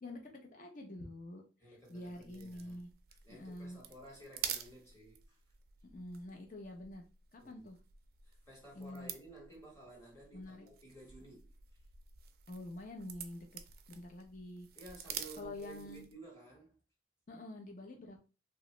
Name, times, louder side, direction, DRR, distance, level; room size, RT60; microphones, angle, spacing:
voice 1, 0.0-1.4 1.7-2.9 3.3-3.8 5.9-7.0 7.3-7.8 8.7-9.1 10.3-10.7 12.5-13.6 13.9-14.7 15.4-16.0 17.3-18.2, left 1 dB, 45° left, 0.6 m, -47 dB
voice 2, 1.6-2.8 3.2-5.4 7.4-7.7 8.2-11.5 14.8-16.8, right 2 dB, 15° left, 1.1 m, -54 dB
sound 1, 1.8-16.2, right 9 dB, 55° right, 0.4 m, -49 dB
2.9 x 2.3 x 3.0 m
head